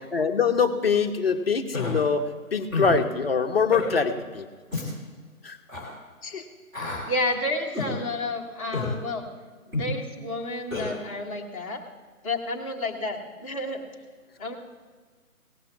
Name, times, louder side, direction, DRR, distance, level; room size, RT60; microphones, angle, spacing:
voice 1, 0.1-2.2 2.5-4.5 5.4-5.6, left 5 dB, 40° left, 6 dB, 0.9 m, -23 dB
Human voice, 1.7-1.9 2.7-3.0 3.7-3.9 4.7-4.9 5.7-5.9 6.7-7.0 7.7-7.9 8.7-8.9 9.7-9.9 10.7-10.9, left 3 dB, 5° right, 2.3 m, -29 dB
voice 2, 6.8-9.2 9.7-11.8 12.2-13.8 14.4-14.6, left 2 dB, 25° left, -2 dB, 1.1 m, -31 dB
17.5 x 6.0 x 7.0 m, 1.5 s
figure-of-eight pair, 150°, 44 cm